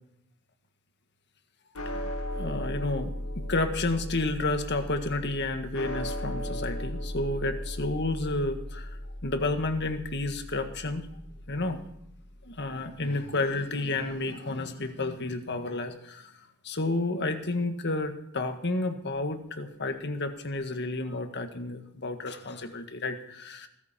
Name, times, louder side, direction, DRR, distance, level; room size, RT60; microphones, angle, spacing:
sound 1, 1.7-12.2, equal, 75° left, 2.1 m, -37 dB
voice 1, 2.3-9.0 9.2-11.1 11.5-11.8 12.4-16.3 16.6-23.7, left 2 dB, 50° left, 7 dB, 1.7 m, -31 dB
20.0 x 14.0 x 4.4 m, 0.77 s
head